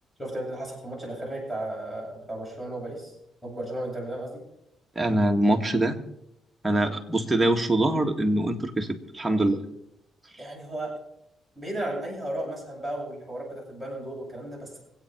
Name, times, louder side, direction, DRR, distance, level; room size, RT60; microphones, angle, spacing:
voice 1, 0.2-3.1 3.4-4.4 10.4-10.9 11.5-14.8, right 1 dB, 5° left, -2 dB, 7.9 m, -34 dB
voice 2, 5.0-6.0 6.6-9.6, right 1 dB, 10° right, 3 dB, 1.9 m, -24 dB
25.0 x 8.8 x 4.7 m, 0.82 s
cardioid pair, 90°, 0 cm